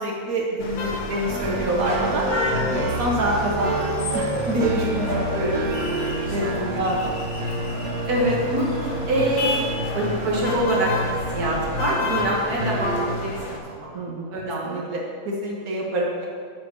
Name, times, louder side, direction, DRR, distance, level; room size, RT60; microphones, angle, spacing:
voice 1, 0.0-2.3 2.7-7.1 13.9-14.3 14.6-16.3, right 1 dB, 70° right, -2 dB, 1.4 m, -26 dB
sound 1, 0.6-13.6, left 2 dB, 55° left, 1.2 m, -31 dB
sound 2, 1.3-13.1, right 1 dB, 50° right, 0.9 m, -29 dB
voice 2, 8.0-8.8 9.0-13.9 14.3-14.9, right 1 dB, 90° right, -4 dB, 2.2 m, -25 dB
7.0 x 5.2 x 6.5 m, 2.1 s
omnidirectional pair, 1.6 m